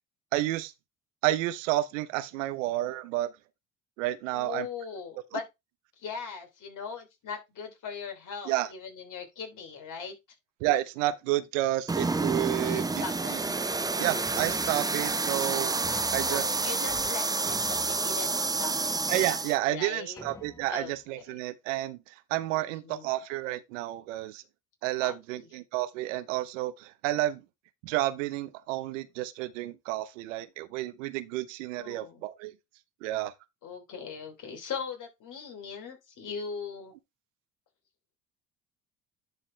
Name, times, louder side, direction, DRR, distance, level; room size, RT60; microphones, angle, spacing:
voice 1, 0.3-0.7 1.2-3.3 4.0-4.7 5.3-5.4 8.5-8.7 10.6-12.8 13.3-13.4 14.0-15.7 16.1-16.5 16.8-16.9 19.1-24.4 24.8-27.4 27.8-32.5 33.0-33.3, right 15 dB, 80° right, 0.8 m, -30 dB
voice 2, 4.3-5.4 6.0-10.1 12.6-13.4 16.2-19.0 19.7-20.2 20.7-20.9 22.5-23.1 25.0-25.4 31.7-32.2 33.6-36.9, left 6 dB, 55° left, 3.2 m, -40 dB
sound 1, 11.9-19.6, right 3 dB, 10° right, 0.6 m, -29 dB
sound 2, 14.3-15.5 15.8-17.1 17.4-18.7 19.3-19.4 20.2-21.0, left 3 dB, 10° left, 1.2 m, -48 dB
10.5 x 4.1 x 3.3 m
hypercardioid pair, 70°, 37 cm